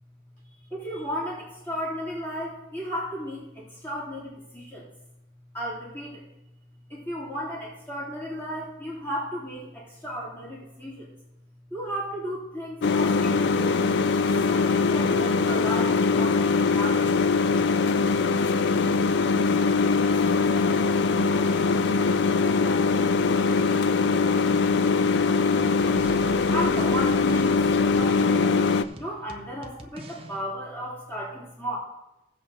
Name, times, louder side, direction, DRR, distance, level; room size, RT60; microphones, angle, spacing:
voice 1, 0.7-4.9 5.5-6.3 6.9-11.1 11.7-13.8 14.3-17.1 26.5-27.5 27.9-31.8, equal, 10° left, -9 dB, 3.1 m, -34 dB
sound 1, 12.8-28.8, left 4 dB, 60° left, 0.3 m, -22 dB
voice 2, 18.4-25.3 29.5-29.7, equal, 40° left, -6 dB, 3.0 m, -47 dB
sound 2, 25.3-30.4, right 1 dB, 30° right, 0.6 m, -43 dB
15.5 x 8.0 x 2.8 m, 0.93 s
head